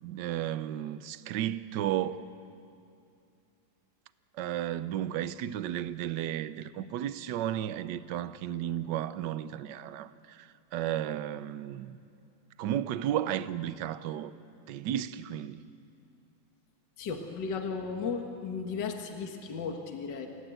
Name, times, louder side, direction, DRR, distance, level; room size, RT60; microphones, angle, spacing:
voice 1, 0.0-2.2 4.3-12.0 12.6-14.3 14.7-15.6, right 11 dB, 65° right, 1.3 m, -33 dB
voice 2, 17.0-20.3, left 5 dB, 60° left, 2.1 m, -35 dB
27.5 x 17.0 x 9.1 m
omnidirectional pair, 2.2 m